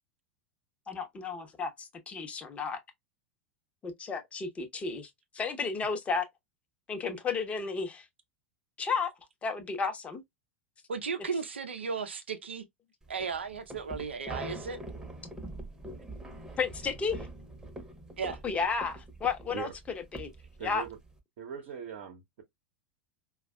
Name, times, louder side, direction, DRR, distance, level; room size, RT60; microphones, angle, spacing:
voice 1, 0.9-2.8 3.8-5.1 5.3-6.2 6.9-8.0 8.8-9.1 9.4-10.2 16.6-17.2 18.4-19.7 20.1-20.3 20.6-20.8, left 5 dB, 20° left, 0.9 m, -32 dB
voice 2, 10.9-12.6 13.1-14.8 18.2-18.4, right 5 dB, 70° right, 0.6 m, -35 dB
sound 1, 13.1-21.2, right 1 dB, 10° right, 1.0 m, -44 dB
voice 3, 20.6-21.0 21.4-22.4, right 7 dB, 50° right, 0.9 m, -40 dB
4.8 x 2.3 x 2.2 m
figure-of-eight pair, 85°, 6 cm